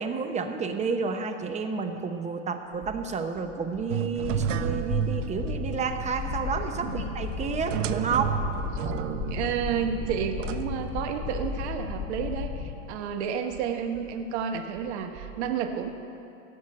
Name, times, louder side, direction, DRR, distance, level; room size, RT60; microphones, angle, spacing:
voice 1, 0.0-8.3, right 5 dB, 20° right, 6 dB, 0.7 m, -30 dB
sound 1, 2.8-3.1 3.4-4.5 4.8-5.1 5.4-12.2 12.5-12.6 13.0-15.4, right 7 dB, 40° right, 2.4 m, -46 dB
sound 2, 3.9-11.5, right 10 dB, 75° right, 0.7 m, -33 dB
sound 3, 4.2-12.8, left 7 dB, 30° left, 1.0 m, -35 dB
voice 2, 6.8-7.3 8.1-8.2 9.3-15.9, right 7 dB, 60° right, 6 dB, 1.3 m, -31 dB
16.5 x 6.3 x 7.5 m, 2.7 s
hypercardioid pair, 115°, 38 cm